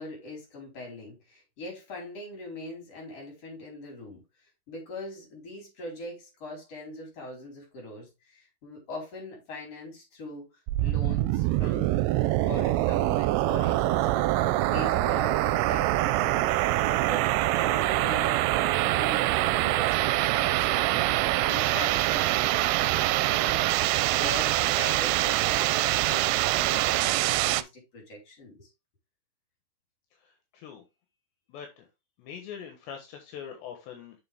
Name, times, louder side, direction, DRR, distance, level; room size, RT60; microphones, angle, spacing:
voice 1, 0.0-4.2 4.7-10.5 10.8-12.0 12.4-16.5 17.1-23.7 24.1-28.7, left 2 dB, 35° left, 4.9 m, -42 dB
sound 1, 10.7-27.6, right 16 dB, 85° right, 2.8 m, -25 dB
voice 2, 31.5-31.8 32.2-34.2, left 8 dB, 75° left, 3.4 m, -42 dB
6.8 x 6.7 x 3.6 m
omnidirectional pair, 5.1 m